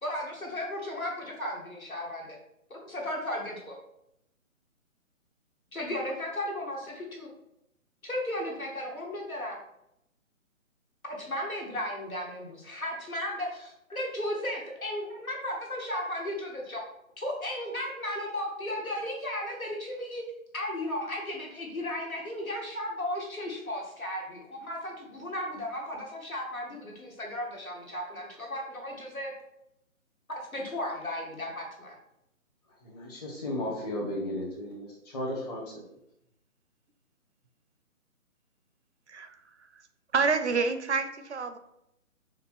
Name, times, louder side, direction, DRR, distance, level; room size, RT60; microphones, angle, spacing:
voice 1, 0.0-2.4 2.7-3.8 5.7-7.3 8.0-9.6 11.2-16.8 17.2-20.2 20.5-29.3 30.3-32.0, left 1 dB, 80° left, 1.7 m, -35 dB
voice 2, 32.7-35.8, left 1 dB, 30° left, 1.3 m, -35 dB
voice 3, 39.1-39.9 40.1-41.6, right 4 dB, 55° right, 0.5 m, -29 dB
5.8 x 2.4 x 3.5 m
figure-of-eight pair, 140°, 41 cm